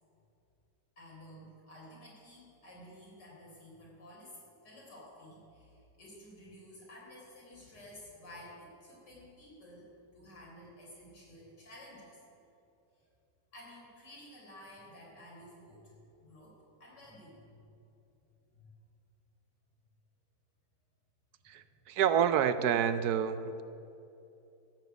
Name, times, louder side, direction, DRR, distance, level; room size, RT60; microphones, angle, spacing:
voice 1, 1.0-12.2 12.9-13.1 13.5-16.0 16.2-16.5 16.8-17.7 18.5-18.7, left 1 dB, 85° left, -5 dB, 4.9 m, -53 dB
voice 2, 21.4-23.6, right 9 dB, 70° right, 12 dB, 1.0 m, -28 dB
15.5 x 7.1 x 8.0 m, 2.8 s
omnidirectional pair, 1.8 m